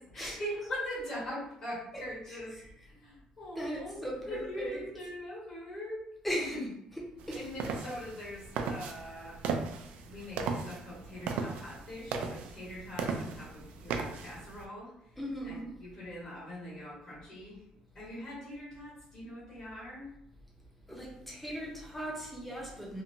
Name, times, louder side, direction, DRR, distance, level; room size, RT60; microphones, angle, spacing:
voice 1, 0.0-2.6 2.8-6.7 7.3-9.4 10.0-15.2 15.4-17.6 17.9-20.1, left 1 dB, 40° left, 1.2 m, -42 dB
voice 2, 2.3-2.7 3.6-4.8 6.2-6.6 7.3-7.5 15.2-15.7 20.9-23.0, equal, 5° left, 0.6 m, -38 dB
sound 1, 7.2-14.6, right 5 dB, 75° right, 0.3 m, -37 dB
2.8 x 2.1 x 2.6 m
cardioid pair, 160°, 2 cm